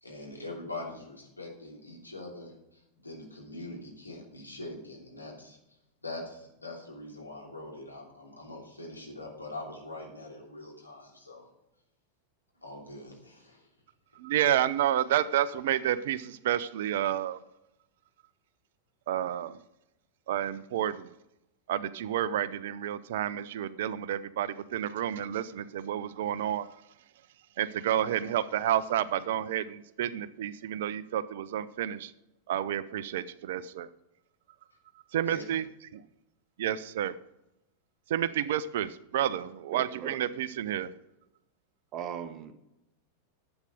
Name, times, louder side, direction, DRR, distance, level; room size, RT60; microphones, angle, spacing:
voice 1, 0.0-5.6 6.0-11.5 12.6-13.7 35.3-35.4, left 2 dB, 85° left, -2 dB, 3.0 m, -43 dB
voice 2, 14.2-17.4 19.1-19.6 20.3-21.1 21.7-26.7 27.6-32.1 32.5-33.9 35.1-35.6 35.9-36.0 36.6-37.1 38.1-40.9, right 11 dB, 55° right, 17 dB, 0.5 m, -30 dB
voice 3, 39.7-40.2 41.9-42.5, right 8 dB, 35° right, 10 dB, 1.1 m, -39 dB
11.5 x 8.1 x 5.1 m, 0.86 s
figure-of-eight pair, 90°, 0 cm